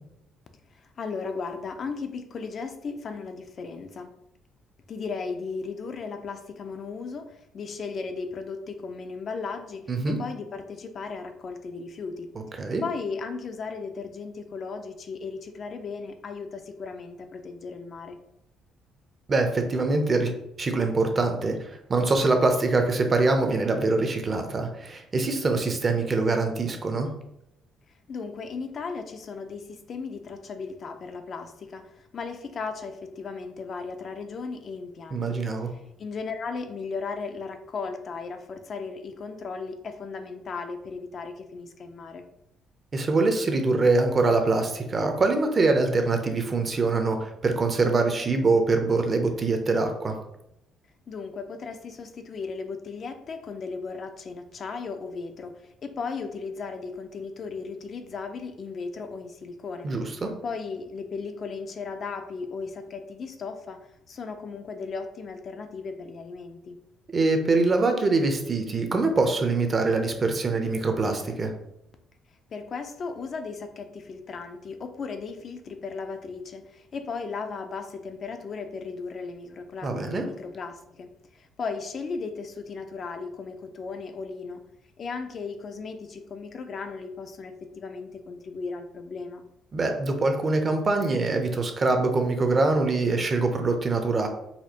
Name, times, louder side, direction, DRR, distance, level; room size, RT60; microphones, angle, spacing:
voice 1, 0.7-4.1 4.9-12.3 12.8-18.2 28.1-35.4 35.7-42.3 51.1-59.9 60.4-66.8 72.5-84.6 85.0-89.4, left 4 dB, 45° left, 7 dB, 0.4 m, -36 dB
voice 2, 19.3-20.3 20.6-27.1 35.1-35.7 42.9-50.1 59.8-60.3 67.1-71.5 79.8-80.2 89.7-94.3, right 3 dB, 30° right, 5 dB, 0.5 m, -24 dB
4.2 x 2.4 x 2.8 m, 0.80 s
cardioid pair, 115°, 0 cm